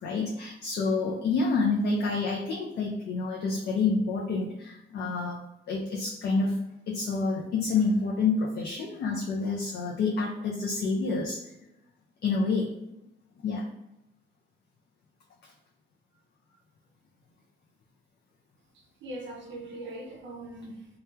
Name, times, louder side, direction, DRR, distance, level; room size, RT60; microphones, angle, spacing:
voice 1, 0.0-6.6 6.9-11.4 12.2-12.9 13.4-13.7, left 4 dB, 60° left, -1 dB, 0.4 m, -28 dB
voice 2, 18.7-20.9, right 1 dB, 70° right, 1 dB, 0.5 m, -41 dB
3.0 x 2.2 x 2.2 m, 0.84 s
cardioid pair, 90°, 20 cm